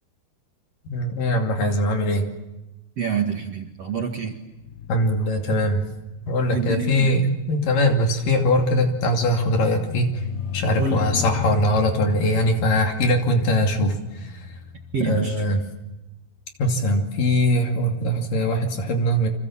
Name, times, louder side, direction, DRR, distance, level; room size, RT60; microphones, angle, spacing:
voice 1, 0.9-2.3 4.9-5.8 6.3-10.2 10.5-14.0 14.2-14.3 15.0-15.6 16.6-19.3, equal, 55° left, 3 dB, 4.1 m, -21 dB
voice 2, 3.0-4.3 6.5-7.1 10.8-11.0 14.9-15.4, right 5 dB, 50° right, 3 dB, 2.3 m, -26 dB
sound 1, 4.5-16.2 16.9-17.2, left 9 dB, 70° left, 1.7 m, -35 dB
29.5 x 26.0 x 7.4 m, 1.0 s
omnidirectional pair, 4.8 m